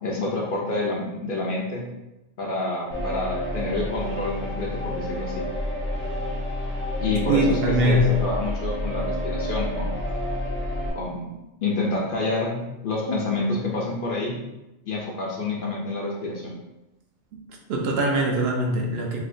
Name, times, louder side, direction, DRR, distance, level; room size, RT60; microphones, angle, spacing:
voice 1, 0.0-1.9 2.4-5.5 7.0-9.9 10.9-11.3 11.6-14.4 14.9-16.5, left 2 dB, 60° left, -2 dB, 0.6 m, -28 dB
sound 1, 2.9-10.9, left 1 dB, 15° left, 0.4 m, -29 dB
voice 2, 7.2-8.2 17.3-17.4 17.7-19.2, equal, 70° right, 0 dB, 0.8 m, -22 dB
3.2 x 2.7 x 2.5 m, 0.96 s
omnidirectional pair, 1.2 m